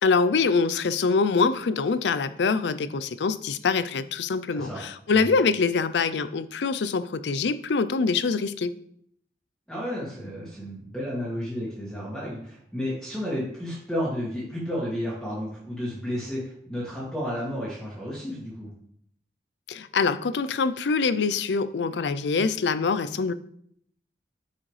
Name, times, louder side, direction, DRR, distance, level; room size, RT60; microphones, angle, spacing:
voice 1, 0.0-8.7 19.7-23.3, left 4 dB, 80° left, 14 dB, 0.5 m, -24 dB
voice 2, 4.5-4.8 5.2-5.3 9.7-18.7, equal, 5° left, -8 dB, 2.0 m, -32 dB
8.3 x 6.3 x 3.3 m, 0.68 s
head